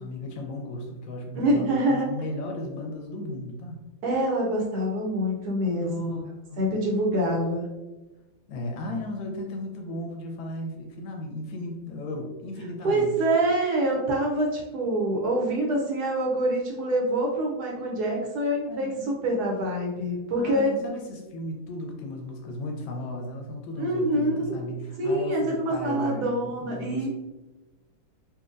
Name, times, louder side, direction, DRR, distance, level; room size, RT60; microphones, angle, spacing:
voice 1, 0.0-3.8 5.8-6.2 6.5-6.6 8.5-13.1 18.7-19.1 20.4-27.1, left 1 dB, 85° left, 1 dB, 1.5 m, -35 dB
voice 2, 1.3-2.1 4.0-6.2 6.6-7.7 12.8-20.8 23.8-24.6 25.0-27.1, right 1 dB, 65° right, -1 dB, 1.1 m, -25 dB
4.2 x 2.6 x 2.5 m, 1.1 s
omnidirectional pair, 2.1 m